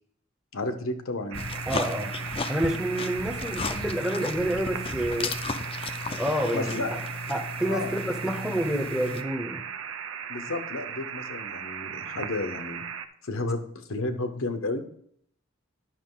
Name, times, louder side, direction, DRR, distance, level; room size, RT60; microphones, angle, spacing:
voice 1, 0.5-1.4 6.5-6.9 7.6-7.9 10.3-12.8 13.2-14.8, left 2 dB, 80° left, 7 dB, 0.9 m, -32 dB
sound 1, 1.3-9.2, left 3 dB, 30° left, 0.5 m, -35 dB
sound 2, 1.3-13.1, right 8 dB, 85° right, 0.6 m, -37 dB
voice 2, 1.7-2.1 2.5-5.3 6.2-7.0 7.3-9.6, right 1 dB, 5° right, 5 dB, 0.8 m, -28 dB
10.0 x 5.8 x 3.8 m, 0.65 s
head